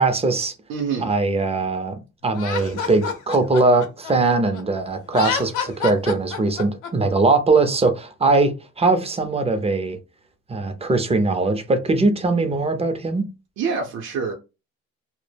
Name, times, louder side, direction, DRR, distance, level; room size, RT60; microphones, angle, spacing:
voice 1, 0.0-0.5 1.0-10.0 10.5-13.3, right 3 dB, 20° right, 0.4 m, -21 dB
voice 2, 0.7-1.1 13.6-14.3, right 5 dB, 60° right, 0.6 m, -26 dB
Laughter, 2.3-4.6 5.0-6.9, left 6 dB, 85° left, 0.7 m, -28 dB
2.1 x 2.0 x 3.2 m
cardioid pair, 90°, 30 cm